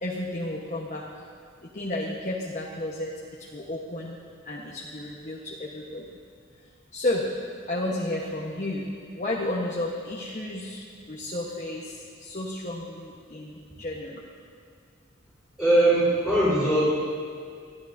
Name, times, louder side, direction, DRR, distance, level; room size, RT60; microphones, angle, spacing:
voice 1, 0.0-1.3 1.6-4.2 4.4-6.1 6.9-7.3 7.7-14.2, left 1 dB, 35° left, -2 dB, 1.2 m, -32 dB
voice 2, 15.6-16.9, right 1 dB, 5° right, -15 dB, 4.1 m, -20 dB
21.0 x 14.0 x 2.7 m, 2.2 s
head